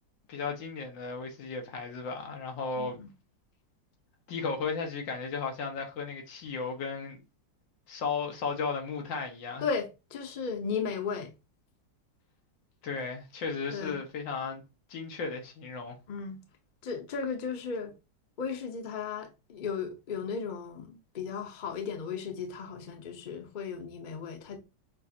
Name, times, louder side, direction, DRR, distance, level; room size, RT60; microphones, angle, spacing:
voice 1, 0.3-3.0 4.3-7.2 7.9-9.7 12.8-14.6 14.9-16.0, left 5 dB, 90° left, 1.8 m, -35 dB
voice 2, 2.8-3.1 9.6-11.3 13.7-14.0 16.1-16.4 16.8-17.9 18.4-24.6, left 5 dB, 45° left, 0.6 m, -35 dB
6.5 x 2.5 x 2.7 m
omnidirectional pair, 2.0 m